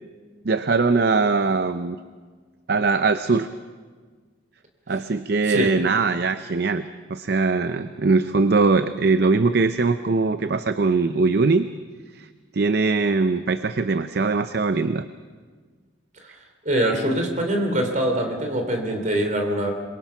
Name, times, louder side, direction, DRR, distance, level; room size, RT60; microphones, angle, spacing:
voice 1, 0.4-2.0 2.7-3.5 4.9-6.8 7.1-11.7 12.2-12.3 12.5-15.0, right 4 dB, 55° right, 11 dB, 0.6 m, -21 dB
voice 2, 16.7-19.7, right 1 dB, 40° right, 4 dB, 3.4 m, -23 dB
26.5 x 22.5 x 5.9 m, 1.5 s
head